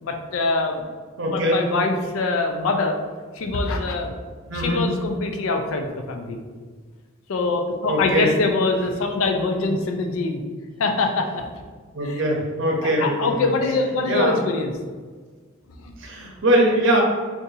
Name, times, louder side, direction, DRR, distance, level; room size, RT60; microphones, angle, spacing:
voice 1, 0.0-0.8 1.3-3.0 3.3-4.1 4.5-6.4 7.3-10.4 10.8-11.5 12.0-12.2 12.8-14.7 15.8-15.9, left 3 dB, 70° left, 4 dB, 0.4 m, -24 dB
voice 2, 1.2-1.6 4.5-4.8 7.9-8.3 11.9-13.5 14.1-14.4 16.0-17.0, right 1 dB, 60° right, -1 dB, 0.7 m, -21 dB
2.6 x 2.5 x 3.9 m, 1.5 s
head